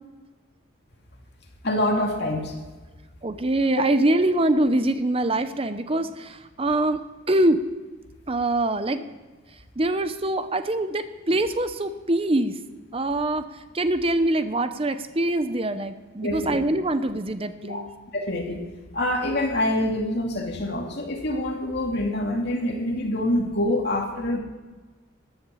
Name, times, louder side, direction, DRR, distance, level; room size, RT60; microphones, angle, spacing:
voice 1, 1.6-2.5 3.7-3.8 16.2-16.6 17.6-17.8 18.1-18.7 18.9-24.4, left 1 dB, 55° left, 1 dB, 2.5 m, -26 dB
voice 2, 3.2-7.0 7.3-7.6 8.3-9.1 9.8-12.6 12.9-17.9, right 1 dB, 25° right, 10 dB, 0.7 m, -24 dB
13.0 x 12.5 x 7.0 m, 1.3 s
head